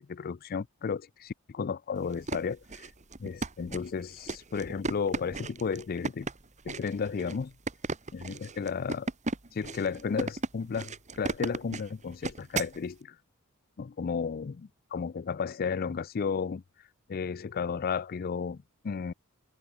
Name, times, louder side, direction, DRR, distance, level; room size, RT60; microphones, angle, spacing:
voice 1, 0.0-2.6 3.2-6.3 6.7-7.5 8.1-9.1 9.5-13.2 13.8-16.6 17.1-19.1, left 5 dB, 45° left, 0.4 m, -33 dB
sound 1, 2.0-12.8, right 3 dB, 35° right, 1.5 m, -36 dB
open air
head